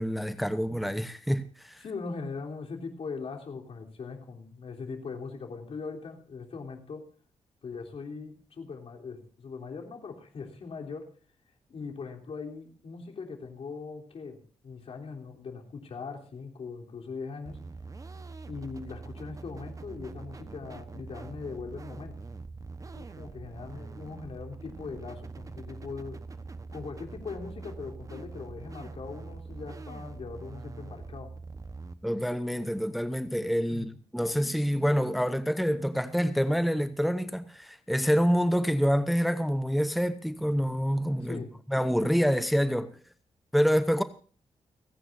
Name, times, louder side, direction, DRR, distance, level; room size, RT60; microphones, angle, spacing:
voice 1, 0.0-1.8 32.0-41.4 41.7-43.0 43.5-44.0, equal, ahead, 0.8 m, -27 dB
voice 2, 1.8-7.1 7.6-11.1 11.7-17.6 18.4-22.2 22.9-26.2 26.7-31.3 33.7-33.9 41.2-41.5, left 4 dB, 65° left, 3.5 m, -40 dB
sound 1, 17.5-31.9, right 4 dB, 30° right, 1.1 m, -43 dB
29.5 x 9.9 x 2.6 m
cardioid pair, 100°, 11 cm